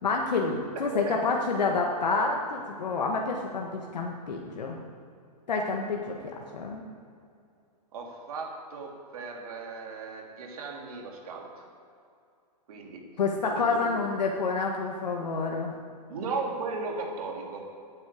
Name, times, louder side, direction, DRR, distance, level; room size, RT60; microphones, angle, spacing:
voice 1, 0.0-4.8 5.5-6.1 6.5-6.8 13.2-15.7, left 4 dB, 90° left, 1 dB, 1.5 m, -28 dB
voice 2, 0.8-1.2 7.9-11.6 12.7-13.0 13.4-13.9 16.1-17.6, right 4 dB, 60° right, 0 dB, 3.1 m, -36 dB
9.1 x 8.9 x 8.3 m, 2.4 s
hypercardioid pair, 155°, 21 cm